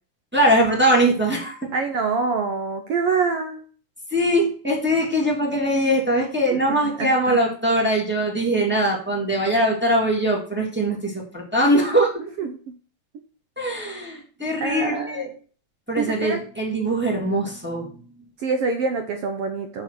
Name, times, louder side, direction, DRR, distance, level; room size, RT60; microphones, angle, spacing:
voice 1, 0.3-1.7 4.1-12.3 13.6-15.3 15.9-17.9, right 1 dB, 5° right, -2 dB, 2.1 m, -21 dB
voice 2, 1.7-3.6 6.5-7.4 12.4-12.6 14.6-15.3 16.0-16.4 18.4-19.8, right 5 dB, 80° right, 6 dB, 1.3 m, -26 dB
7.0 x 6.4 x 6.0 m, 0.41 s
omnidirectional pair, 3.9 m